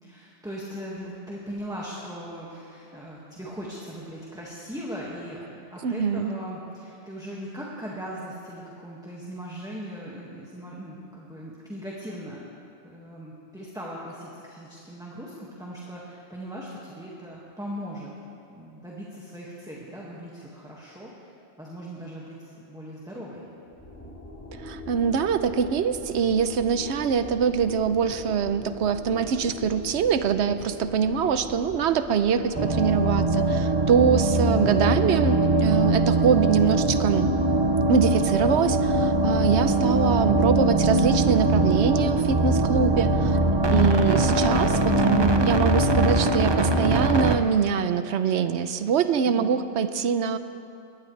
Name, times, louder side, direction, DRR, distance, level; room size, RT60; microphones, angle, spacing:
voice 1, 0.0-12.4 12.8-18.1 18.5-21.3 21.6-23.4 34.4-34.8 39.7-40.1 44.2-45.0 49.3-49.5, equal, 5° right, -5 dB, 1.7 m, -39 dB
voice 2, 5.8-6.4 24.6-37.3 37.9-43.4 43.7-50.4, right 6 dB, 80° right, 11 dB, 1.0 m, -24 dB
sound 1, 23.7-33.0, left 1 dB, 15° left, 4.2 m, -41 dB
sound 2, 32.5-47.4, right 2 dB, 30° right, 0.7 m, -22 dB
21.5 x 17.5 x 3.3 m, 2.6 s
omnidirectional pair, 1.1 m